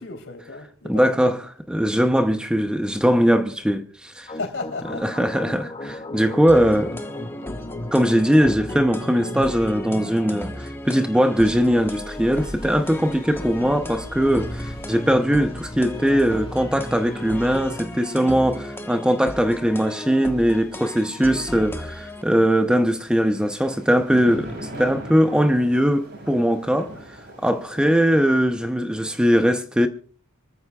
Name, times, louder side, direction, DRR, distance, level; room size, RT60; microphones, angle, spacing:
voice 1, 0.0-1.4 4.2-5.0, left 3 dB, 65° left, 3.6 m, -34 dB
voice 2, 0.8-4.3 5.0-7.0 7.9-26.9 27.4-29.9, equal, 5° right, 0.7 m, -20 dB
sound 1, 4.3-18.0, left 1 dB, 30° left, 2.2 m, -36 dB
sound 2, 6.5-22.2, left 1 dB, 10° left, 1.3 m, -36 dB
sound 3, 16.1-28.4, right 1 dB, 55° right, 6.2 m, -43 dB
26.0 x 14.0 x 2.4 m
head